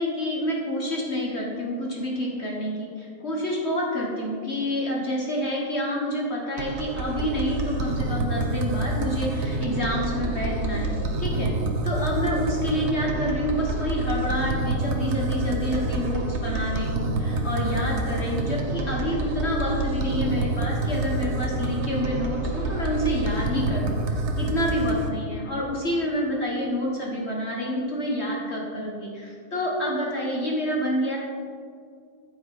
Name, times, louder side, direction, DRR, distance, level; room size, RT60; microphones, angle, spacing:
voice 1, 0.0-11.5 11.8-31.2, equal, 35° left, -2 dB, 1.2 m, -28 dB
sound 1, 6.6-25.1, right 2 dB, 65° right, 0.7 m, -27 dB
12.5 x 5.6 x 4.9 m, 2.2 s
omnidirectional pair, 2.4 m